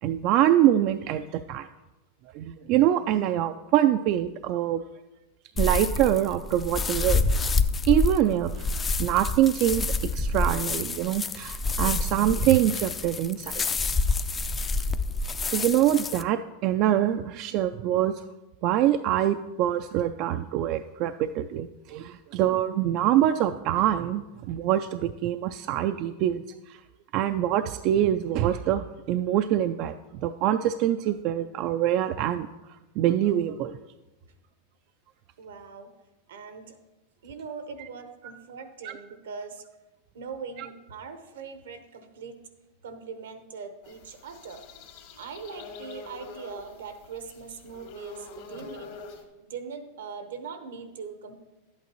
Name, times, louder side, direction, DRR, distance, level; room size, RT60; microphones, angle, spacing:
voice 1, 0.0-1.7 2.3-4.8 5.6-7.2 7.9-8.7 9.0-9.9 10.1-13.6 15.5-18.2 18.6-26.8 27.1-32.5 33.0-33.8 38.8-38.9 40.6-40.7, right 12 dB, 50° right, 9 dB, 0.3 m, -24 dB
sound 1, 5.6-16.2, left 3 dB, 20° left, 0.4 m, -27 dB
voice 2, 35.4-35.9 36.3-36.8 37.2-39.6 40.1-42.5 42.8-44.6 45.2-49.0 49.5-51.3, right 5 dB, 80° right, 8 dB, 1.0 m, -41 dB
sound 2, 43.8-49.2, left 3 dB, 65° left, 2.0 m, -45 dB
10.5 x 8.5 x 3.0 m, 1.1 s
hypercardioid pair, 110°, 0 cm